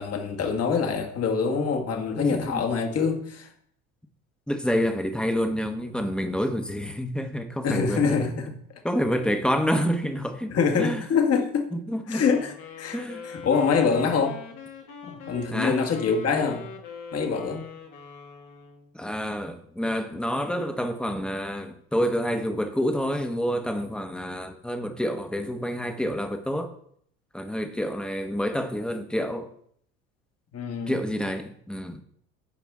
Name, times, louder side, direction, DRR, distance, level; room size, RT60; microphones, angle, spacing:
voice 1, 0.0-3.5 7.6-8.5 10.5-11.7 12.1-13.0 13.2-14.4 15.0-16.6 17.1-17.7 30.5-31.0, left 5 dB, 45° left, 1.8 m, -25 dB
voice 2, 2.2-2.7 4.5-8.2 8.8-11.0 11.7-12.3 12.9-13.2 15.5-15.8 18.9-26.7 27.3-29.5 30.9-32.0, equal, 5° left, 1.2 m, -28 dB
sound 1, 12.1-18.9, left 5 dB, 65° left, 1.9 m, -43 dB
14.0 x 5.0 x 3.6 m
supercardioid pair, 80°, 34 cm